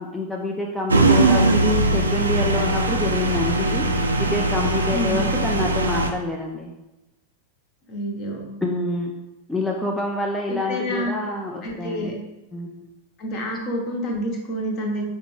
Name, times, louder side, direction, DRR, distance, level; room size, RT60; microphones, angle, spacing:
voice 1, 0.0-3.9 4.2-6.7 8.6-9.1 9.5-12.2 12.5-12.9, left 2 dB, 5° left, -1 dB, 0.4 m, -27 dB
sound 1, 0.9-6.1, right 2 dB, 80° right, 0.3 m, -20 dB
voice 2, 4.9-5.3 7.9-8.5 10.5-11.1 11.6-12.1 13.2-15.0, equal, 40° left, 0 dB, 0.9 m, -28 dB
4.2 x 2.2 x 3.1 m, 1.0 s
figure-of-eight pair, 95°, 0 cm